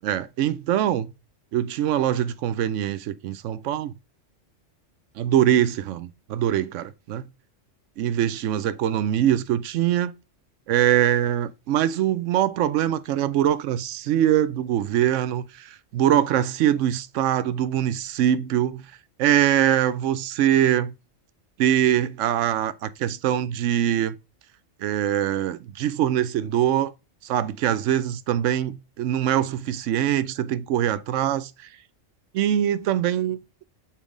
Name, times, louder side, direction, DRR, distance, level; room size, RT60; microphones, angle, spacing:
voice 1, 0.0-1.1 1.5-3.9 5.2-7.2 8.0-10.1 10.7-18.8 19.2-20.9 21.6-24.2 24.8-26.9 27.2-31.5 32.3-33.6, right 11 dB, 75° right, 0.9 m, -23 dB
7.1 x 4.6 x 3.7 m
omnidirectional pair, 1.3 m